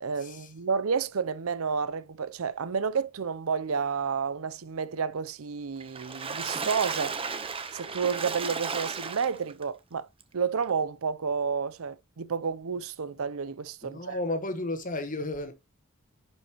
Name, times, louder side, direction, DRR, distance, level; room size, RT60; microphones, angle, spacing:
voice 1, 0.0-7.2 7.7-10.1 10.3-14.2, right 6 dB, 75° right, 0.6 m, -30 dB
Water / Splash splatter, 5.8-9.6 10.2-10.3 10.6-10.7, right 5 dB, 25° right, 0.9 m, -34 dB
voice 2, 13.8-15.5, left 2 dB, 40° left, 1.3 m, -33 dB
10.5 x 5.3 x 3.0 m
head